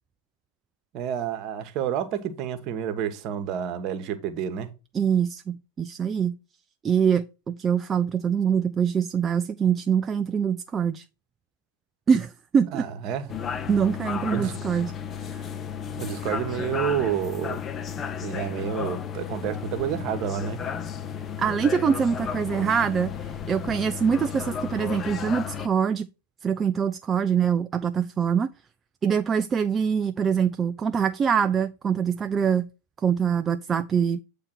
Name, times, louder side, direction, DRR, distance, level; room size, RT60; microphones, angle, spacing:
voice 1, 0.9-4.7 12.7-13.3 14.3-14.5 16.0-17.6 18.2-20.6, right 9 dB, 40° right, 1.1 m, -29 dB
voice 2, 4.9-6.4 6.8-11.0 12.1-12.9 13.7-14.9 15.3-15.5 21.4-26.1 26.4-28.5 29.0-32.7 33.0-34.2, right 7 dB, 20° right, 0.3 m, -24 dB
sound 1, 13.3-25.7, left 7 dB, 25° left, 0.6 m, -33 dB
8.5 x 3.4 x 6.1 m
figure-of-eight pair, 90°, 0 cm